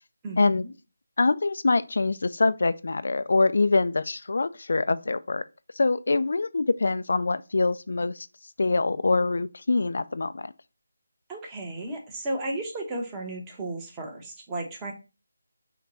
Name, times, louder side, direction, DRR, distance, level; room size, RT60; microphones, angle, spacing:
voice 1, 0.2-0.7 11.3-14.9, right 2 dB, 15° right, 0.9 m, -34 dB
voice 2, 1.2-5.4 5.8-8.3 8.6-10.5, left 3 dB, 65° left, 0.3 m, -24 dB
5.9 x 2.2 x 3.9 m
figure-of-eight pair, 165°, 0 cm